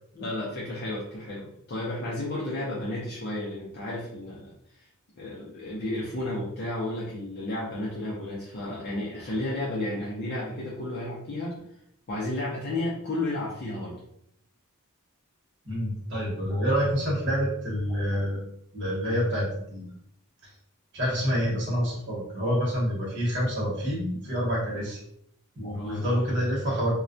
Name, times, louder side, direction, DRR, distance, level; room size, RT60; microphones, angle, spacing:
voice 1, 0.1-4.5 4.8-4.9 5.2-11.6 12.1-14.0 24.7-24.9 25.7-26.0, left 1 dB, 45° left, -6 dB, 0.5 m, -32 dB
voice 2, 15.6-18.4 18.7-19.9 20.9-25.0 25.6-26.9, equal, 55° right, -4 dB, 1.0 m, -27 dB
2.2 x 2.2 x 2.5 m, 0.72 s
head